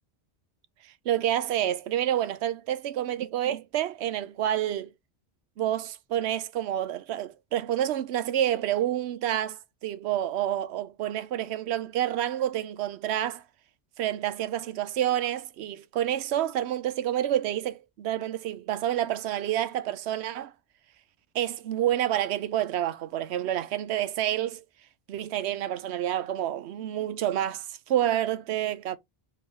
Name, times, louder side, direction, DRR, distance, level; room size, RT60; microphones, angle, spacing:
voice 1, 0.8-4.9 5.6-13.4 14.0-20.5 21.3-24.6 25.1-29.0, right 12 dB, 80° right, 0.8 m, -28 dB
3.1 x 2.9 x 4.6 m
omnidirectional pair, 1.1 m